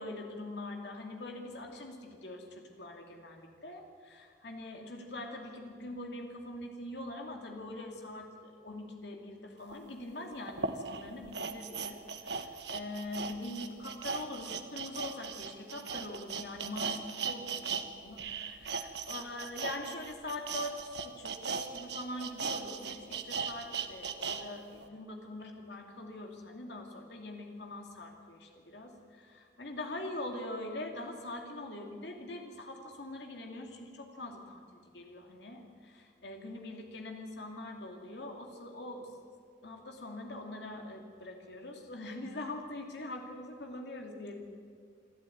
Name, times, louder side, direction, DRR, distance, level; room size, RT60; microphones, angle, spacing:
voice 1, 0.0-17.7 18.0-39.1 39.6-44.4, left 2 dB, 70° left, 2 dB, 2.8 m, -43 dB
sound 1, 9.7-9.8 10.5-17.8 18.1-24.4 24.8-24.9, right 5 dB, 65° right, 1.3 m, -38 dB
26.0 x 12.5 x 9.4 m, 2.1 s
head